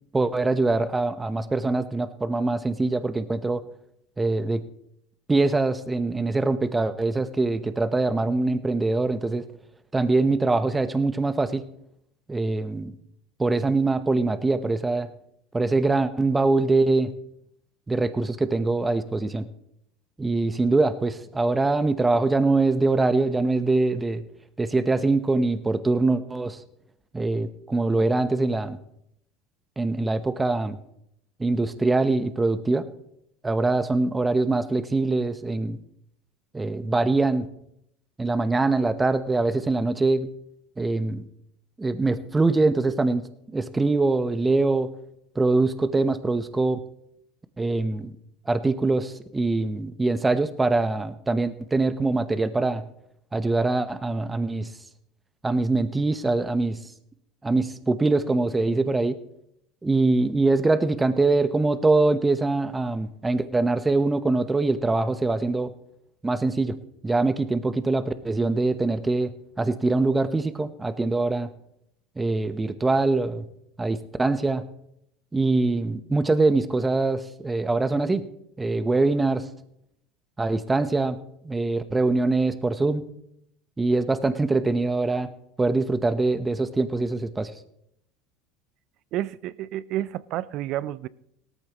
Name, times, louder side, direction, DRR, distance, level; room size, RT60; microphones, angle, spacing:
voice 1, 0.1-3.6 4.2-4.6 5.3-9.4 9.9-11.6 12.3-12.9 13.4-15.1 15.5-17.1 17.9-19.5 20.2-24.2 24.6-26.6 27.1-28.8 29.8-30.8 31.4-32.8 33.4-35.8 36.5-37.5 38.2-40.3 40.8-41.2 41.8-43.2 43.5-44.9 45.3-46.8 47.6-48.1 48.5-52.8 53.3-54.7 55.4-56.8 57.4-59.2 59.8-65.7 66.2-66.8 67.0-69.3 69.6-71.5 72.2-73.5 73.8-74.6 75.3-78.2 78.6-79.5 80.4-81.2 81.4-83.0 83.8-85.3 85.6-87.5, right 3 dB, 15° right, 0.9 m, -23 dB
voice 2, 89.1-91.1, right 13 dB, 55° right, 0.5 m, -30 dB
18.0 x 13.5 x 3.0 m
hypercardioid pair, 90°, 0 cm